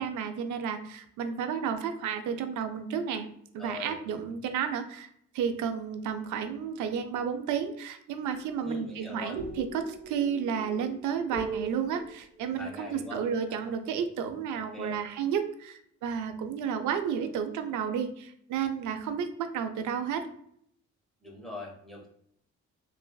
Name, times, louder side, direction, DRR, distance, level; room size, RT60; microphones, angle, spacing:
voice 1, 0.0-3.3 3.5-5.1 5.3-20.2, right 7 dB, 75° right, 8 dB, 0.5 m, -32 dB
voice 2, 3.6-4.0 8.6-9.4 12.5-13.2 14.5-15.0 21.2-22.1, left 1 dB, ahead, -3 dB, 1.0 m, -42 dB
sound 1, 8.3-13.9, right 3 dB, 55° right, 1.1 m, -42 dB
3.1 x 2.5 x 2.2 m, 0.68 s
cardioid pair, 90°, 30 cm